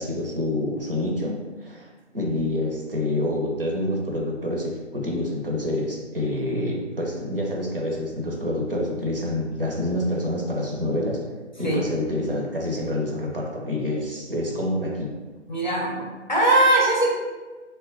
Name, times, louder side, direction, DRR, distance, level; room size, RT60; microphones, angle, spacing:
voice 1, 0.0-11.2 11.6-15.1, left 1 dB, 50° right, -2 dB, 0.7 m, -27 dB
voice 2, 15.5-17.1, right 1 dB, 40° left, -4 dB, 0.6 m, -20 dB
2.9 x 2.2 x 3.8 m, 1.3 s
figure-of-eight pair, 155°, 36 cm